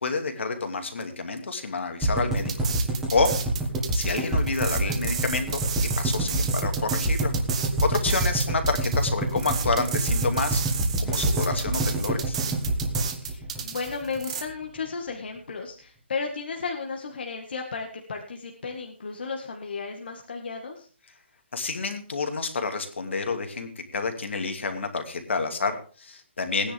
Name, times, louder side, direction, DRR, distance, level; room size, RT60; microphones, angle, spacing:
voice 1, 0.0-2.5 3.1-3.4 3.9-7.3 7.8-10.6 11.0-12.4 21.5-26.7, left 4 dB, 75° left, 6 dB, 2.7 m, -29 dB
sound 1, 2.0-14.2 14.5-14.6 14.8-14.9, right 2 dB, 5° right, 1.9 m, -26 dB
voice 2, 2.4-2.9 13.2-20.9 26.6-26.7, left 4 dB, 55° left, 2 dB, 1.9 m, -34 dB
sound 2, 2.4-14.4, right 7 dB, 30° right, 1.2 m, -33 dB
18.0 x 10.0 x 3.7 m, 0.39 s
hypercardioid pair, 180°, 7 cm